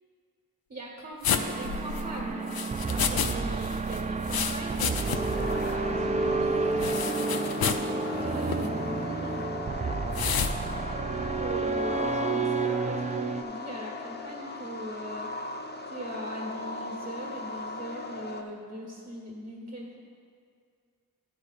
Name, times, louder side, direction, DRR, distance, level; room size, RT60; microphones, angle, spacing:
voice 1, 0.7-2.6 2.8-9.4 11.1-15.3 15.8-20.0, right 1 dB, 40° right, -4 dB, 1.5 m, -40 dB
sound 1, 1.2-3.3 3.6-5.4 5.7-5.8 6.8-7.9 8.4-8.7 10.1-10.5, left 7 dB, 75° left, 0.5 m, -30 dB
sound 2, 1.3-13.4, right 4 dB, 20° right, 0.3 m, -30 dB
sound 3, 5.0-18.4, left 3 dB, 30° left, 0.6 m, -38 dB
12.0 x 5.0 x 4.1 m, 2.2 s
wide cardioid pair, 65°, 37 cm